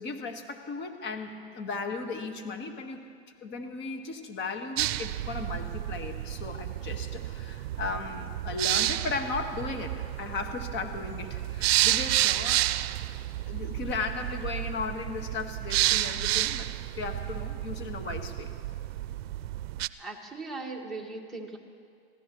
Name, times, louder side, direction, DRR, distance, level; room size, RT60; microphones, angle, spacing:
voice 1, 0.0-3.0 3.4-12.9 13.4-16.7 17.0-18.5, left 4 dB, 35° left, 5 dB, 1.6 m, -36 dB
sound 1, 4.8-19.9, right 15 dB, 75° right, 0.5 m, -30 dB
voice 2, 20.0-21.6, right 3 dB, ahead, 1 dB, 1.7 m, -39 dB
24.0 x 16.0 x 3.1 m, 2.2 s
supercardioid pair, 130°, 31 cm